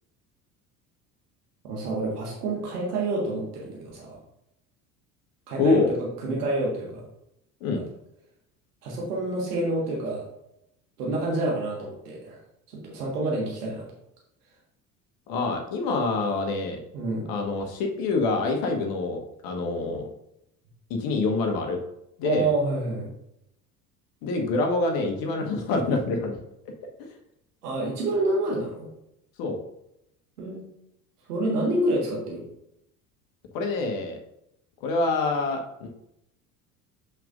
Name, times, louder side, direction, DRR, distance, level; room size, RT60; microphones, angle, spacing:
voice 1, 1.7-4.2 5.5-7.1 7.7-7.8 8.8-10.2 11.0-12.4 12.7-13.9 16.9-17.2 22.2-23.1 27.6-28.9 30.4-30.7 31.3-32.4, right 2 dB, 70° right, -2 dB, 1.7 m, -28 dB
voice 2, 5.6-5.9 7.6-7.8 15.3-16.8 17.3-20.1 20.9-21.8 22.2-22.5 24.2-26.4 27.0-27.1 29.4-29.6 33.5-34.2 34.8-35.9, left 3 dB, 45° left, 3 dB, 1.2 m, -26 dB
6.7 x 5.9 x 2.5 m, 0.82 s
figure-of-eight pair, 65°, 47 cm